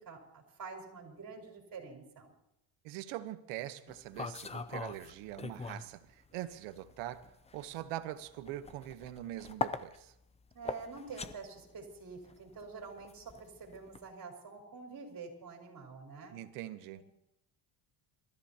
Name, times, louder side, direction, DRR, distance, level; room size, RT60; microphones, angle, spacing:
voice 1, 0.0-2.3 10.5-16.4 16.9-17.0, right 4 dB, 40° right, 4.6 m, -47 dB
voice 2, 2.8-7.3 7.5-10.1 16.3-17.0, right 13 dB, 85° right, 1.2 m, -43 dB
sound 1, 3.9-5.9 6.2-14.0, left 4 dB, 15° left, 0.5 m, -42 dB
26.5 x 14.0 x 2.9 m
cardioid pair, 115°, 50 cm